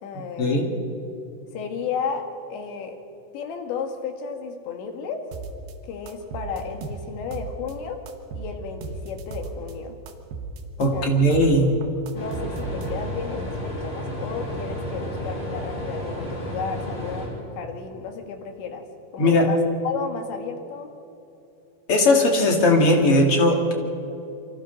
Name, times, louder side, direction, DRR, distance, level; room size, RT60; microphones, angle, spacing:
voice 1, 0.0-0.7 1.5-3.0 3.3-5.2 5.8-8.0 8.4-10.0 10.9-11.7 12.1-18.9 19.1-20.9, left 6 dB, 90° left, 4 dB, 4.1 m, -33 dB
sound 1, 5.3-5.7 6.1-7.7 8.1-9.7 10.1-11.6 11.8-13.3, right 3 dB, 70° right, 3.2 m, -35 dB
voice 2, 10.8-11.7 19.2-19.5 21.9-23.7, left 1 dB, 40° left, 2 dB, 2.6 m, -18 dB
sound 2, 12.1-17.3, left 1 dB, 10° left, 4.6 m, -32 dB
27.5 x 24.5 x 4.0 m, 2.8 s
omnidirectional pair, 5.0 m